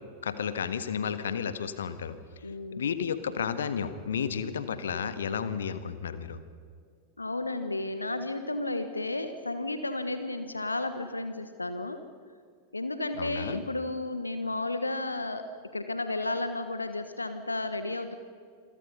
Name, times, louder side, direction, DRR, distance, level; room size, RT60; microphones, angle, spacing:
voice 1, 0.2-2.2 2.8-6.4 13.2-13.6, left 7 dB, 65° left, 12 dB, 1.4 m, -32 dB
voice 2, 2.4-2.9 7.2-12.0 12.7-15.4 15.7-18.1, left 2 dB, 80° left, 10 dB, 1.2 m, -33 dB
27.5 x 22.5 x 5.5 m, 2.2 s
figure-of-eight pair, 90°, 0 cm